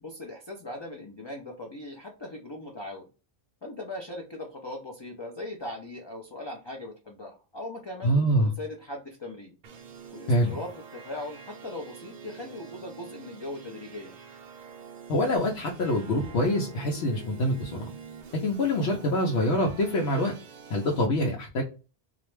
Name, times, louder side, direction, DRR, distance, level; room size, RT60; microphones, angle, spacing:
voice 1, 0.0-3.1 3.6-9.5 10.1-14.1, left 1 dB, 40° left, 0 dB, 0.4 m, -39 dB
voice 2, 8.0-8.5 10.3-10.6 15.1-17.9 18.4-20.3 20.7-21.6, equal, 85° left, 0 dB, 0.9 m, -25 dB
sound 1, 9.6-21.1, right 6 dB, 60° right, 0.6 m, -46 dB
2.4 x 2.1 x 3.0 m, 0.33 s
omnidirectional pair, 1.1 m